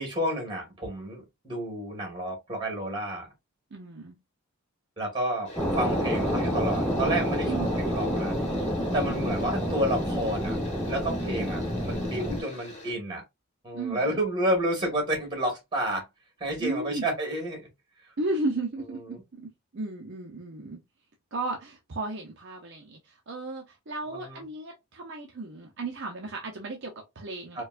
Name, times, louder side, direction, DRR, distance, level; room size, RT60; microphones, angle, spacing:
voice 1, 0.0-3.3 5.0-8.4 8.9-10.6 10.9-13.2 13.6-16.0 16.4-17.6 19.1-19.2 24.1-24.4 27.5-27.6, right 1 dB, 20° right, 1.9 m, -30 dB
voice 2, 3.7-4.2 7.5-7.8 9.0-9.4 13.7-14.3 16.6-17.0 18.2-20.8 21.3-27.6, right 2 dB, 55° right, 0.6 m, -35 dB
sound 1, 5.5-12.9, left 2 dB, 30° left, 1.2 m, -44 dB
sound 2, 5.6-12.4, equal, 5° left, 1.0 m, -28 dB
4.4 x 2.3 x 2.5 m
head